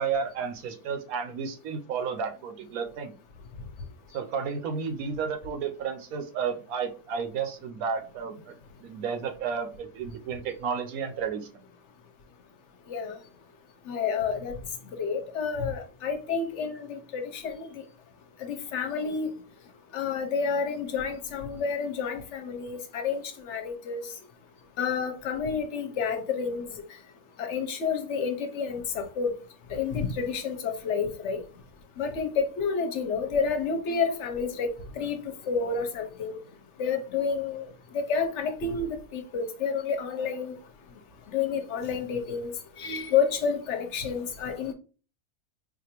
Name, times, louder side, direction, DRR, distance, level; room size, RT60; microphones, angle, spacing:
voice 1, 0.0-3.1 4.1-8.5 8.8-11.7, right 6 dB, 80° right, 1.1 m, -32 dB
voice 2, 13.9-14.5 15.0-17.8 18.4-19.3 19.9-24.0 24.8-26.8 27.4-29.3 29.7-31.4 32.0-34.7 34.9-35.2 35.5-36.4 36.8-37.7 37.9-40.5 41.3-42.5 42.8-44.7, left 5 dB, 60° left, 0.9 m, -29 dB
4.2 x 2.5 x 2.9 m
omnidirectional pair, 1.6 m